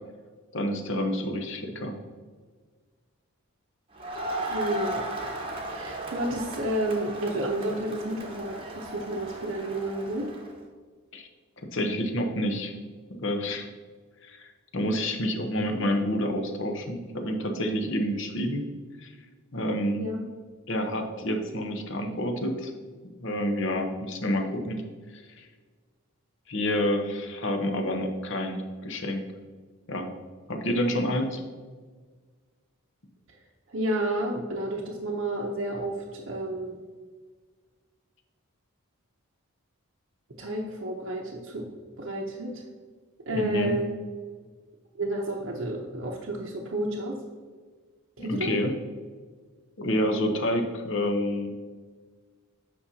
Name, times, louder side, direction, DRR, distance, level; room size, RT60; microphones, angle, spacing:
voice 1, 0.5-2.0 11.1-11.3 11.7-12.7 13.1-13.7 14.2-18.6 19.0-19.1 19.5-20.1 20.7-22.7 23.2-24.8 25.1-25.5 26.5-29.2 29.9-30.1 30.5-31.4 43.3-43.8 48.2-48.7 49.8-51.5, equal, 55° left, 4 dB, 0.8 m, -28 dB
Crowd, 3.9-10.5, right 1 dB, 25° right, 0.9 m, -36 dB
voice 2, 4.5-5.0 5.7-10.3 20.0-20.2 33.7-36.8 40.4-41.7 42.0-42.6 43.3-43.9 45.0-47.2 48.2-48.5, right 1 dB, 60° right, -3 dB, 0.7 m, -31 dB
8.6 x 5.4 x 2.8 m, 1.5 s
head